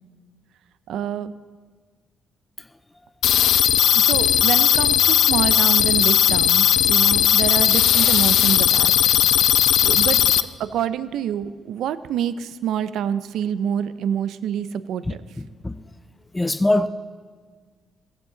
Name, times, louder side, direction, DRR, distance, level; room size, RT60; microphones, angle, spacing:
voice 1, 0.9-1.3 3.9-9.1 9.8-10.2 10.6-15.2, right 9 dB, 80° right, 0.6 m, -26 dB
sound 1, 3.2-10.4, left 10 dB, 75° left, 0.5 m, -17 dB
voice 2, 15.1-15.8 16.3-16.9, left 1 dB, 15° left, 0.5 m, -23 dB
15.5 x 15.5 x 3.9 m
cardioid pair, 90°, 0 cm